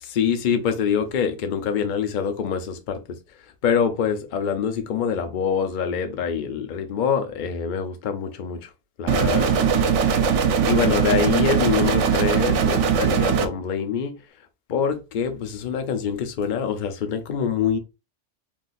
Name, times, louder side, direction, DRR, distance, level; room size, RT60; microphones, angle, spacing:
voice 1, 0.0-3.0 3.6-8.7 9.0-9.5 10.7-14.1 14.7-17.8, left 7 dB, 55° left, 0.6 m, -25 dB
sound 1, 9.1-13.5, right 6 dB, 75° right, 0.9 m, -20 dB
2.5 x 2.4 x 3.8 m
omnidirectional pair, 1.2 m